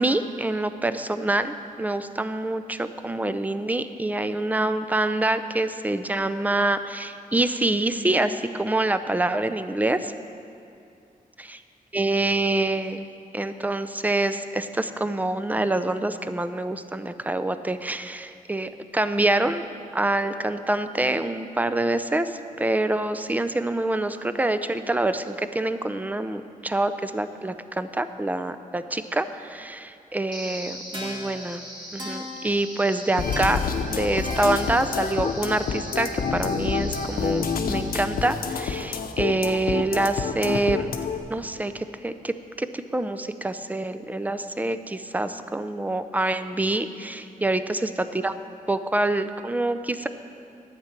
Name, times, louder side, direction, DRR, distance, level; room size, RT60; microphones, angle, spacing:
voice 1, 0.0-10.1 11.9-13.1 13.3-19.6 19.9-31.6 31.9-33.6 33.9-40.9 41.3-48.3 48.7-50.1, right 2 dB, 10° right, 10 dB, 0.5 m, -26 dB
sound 1, 30.3-39.3, equal, 30° right, 2.5 m, -40 dB
sound 2, 33.2-41.2, left 6 dB, 85° left, 0.7 m, -28 dB
12.0 x 8.3 x 5.9 m, 2.6 s
wide cardioid pair, 95°, 15 cm